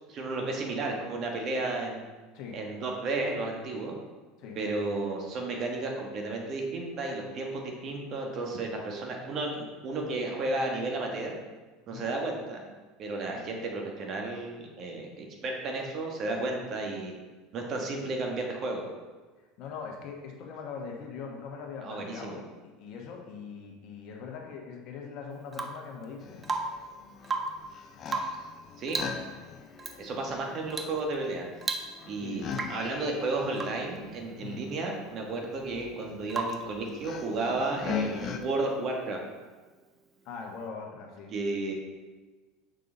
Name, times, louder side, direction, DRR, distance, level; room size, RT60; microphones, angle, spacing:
voice 1, 0.1-2.0 2.5-4.0 4.5-11.4 11.9-12.6 13.0-17.1 17.5-18.8 21.8-22.4 28.8-29.0 30.0-31.5 32.1-39.2 41.3-41.7, right 2 dB, 45° right, 1 dB, 1.4 m, -33 dB
voice 2, 19.4-22.5 22.8-26.4 32.2-32.7 34.4-34.6 40.2-41.3, left 5 dB, 60° left, 1 dB, 1.3 m, -41 dB
Rain / Water tap faucet / Drip, 25.5-25.9 26.4-26.9 27.2-27.7 28.1-28.5 28.9-29.2 29.8-30.0 30.7-31.0 31.3-31.4 31.6-32.2 32.5-32.9 33.5-33.9 36.3-36.7 38.6-38.7, right 3 dB, 25° right, 0.6 m, -34 dB
sound 1, 26.2-38.4, left 6 dB, 40° left, 0.6 m, -41 dB
6.5 x 5.4 x 3.9 m, 1.3 s
supercardioid pair, 100°, 0 cm